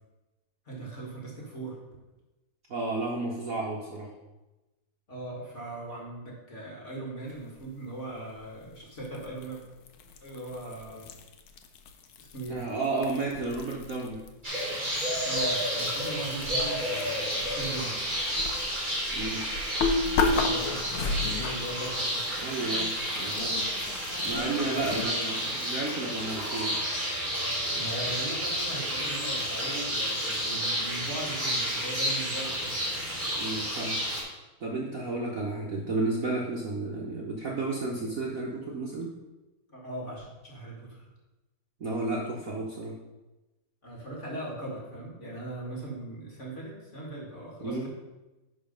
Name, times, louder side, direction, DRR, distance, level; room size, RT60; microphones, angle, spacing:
voice 1, 0.7-1.8 5.1-9.6 10.2-11.1 12.2-12.6 15.2-17.9 20.3-22.2 24.6-25.0 27.8-32.8 39.7-41.1 43.8-47.9, right 1 dB, 35° left, -3 dB, 2.0 m, -39 dB
voice 2, 2.7-4.1 12.5-14.2 19.1-19.4 22.4-23.6 24.2-26.8 33.4-34.0 34.6-39.1 41.8-42.9 47.6-47.9, right 2 dB, 50° right, -3 dB, 1.2 m, -32 dB
sound 1, 9.0-14.3 14.6-25.0, left 4 dB, 80° left, 1.6 m, -34 dB
sound 2, 14.4-34.2, equal, 20° right, 3.3 m, -31 dB
11.0 x 4.0 x 5.2 m, 1.1 s
omnidirectional pair, 2.4 m